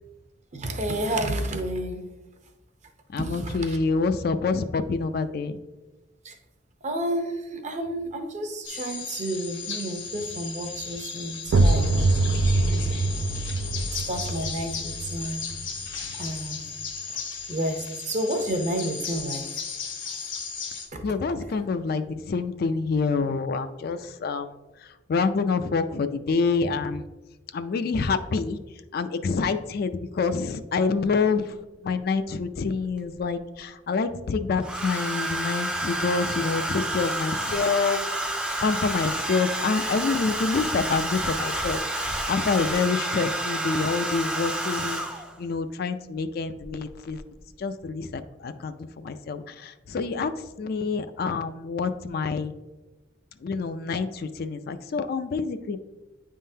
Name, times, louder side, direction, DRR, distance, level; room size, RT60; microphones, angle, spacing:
voice 1, 0.5-2.1 3.2-3.8 6.2-6.4 6.8-12.3 12.6-13.0 13.7-15.5 16.1-16.7 17.1-17.2 17.5-19.5 20.9-21.0 21.3-21.5, right 1 dB, 40° right, 5 dB, 0.7 m, -31 dB
voice 2, 3.1-5.6 21.0-24.5 24.8-27.0 27.5-28.6 28.9-45.1 45.4-47.2 47.6-50.3 50.6-52.5 53.4-55.8, left 4 dB, 55° left, 10 dB, 0.4 m, -27 dB
sound 1, 8.6-20.9, left 6 dB, 80° left, 1.2 m, -35 dB
sound 2, 11.5-17.0, right 2 dB, 75° right, 0.4 m, -25 dB
Domestic sounds home sounds, 31.0-31.1 32.5-33.2 34.6-45.4 46.6-46.9 47.1-47.5, right 1 dB, 5° right, 0.5 m, -29 dB
9.5 x 3.7 x 2.7 m, 1.1 s
head